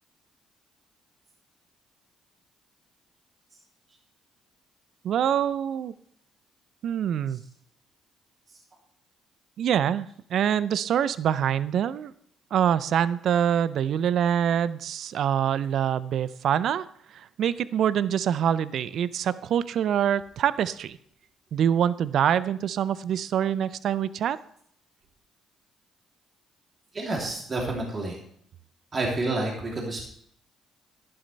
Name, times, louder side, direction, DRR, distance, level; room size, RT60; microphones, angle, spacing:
voice 1, 5.0-5.9 6.8-7.4 9.6-12.1 12.5-16.9 17.1-21.0 21.5-24.4, right 9 dB, 65° right, 17 dB, 0.5 m, -25 dB
voice 2, 26.9-28.2 28.9-30.0, right 2 dB, 40° right, -1 dB, 2.9 m, -29 dB
11.5 x 11.0 x 3.3 m, 0.66 s
hypercardioid pair, 55°, 0 cm